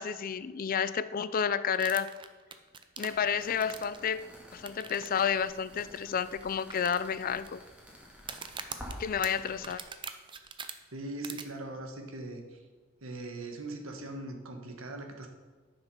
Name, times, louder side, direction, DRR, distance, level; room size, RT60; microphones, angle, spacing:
voice 1, 0.0-2.1 3.0-7.6 9.0-9.8, left 7 dB, 45° left, 15 dB, 0.4 m, -31 dB
sound 1, 1.7-4.1 4.7-5.1 5.3-5.4 6.0-6.1 6.7-7.5 8.2-10.7 11.2-11.4, right 6 dB, 25° right, 0.6 m, -42 dB
sound 2, 3.0-9.9, equal, 5° right, 2.2 m, -50 dB
voice 2, 10.9-12.6 13.0-15.3, right 2 dB, 85° right, 4 dB, 1.4 m, -40 dB
10.5 x 6.1 x 5.4 m, 1.5 s
head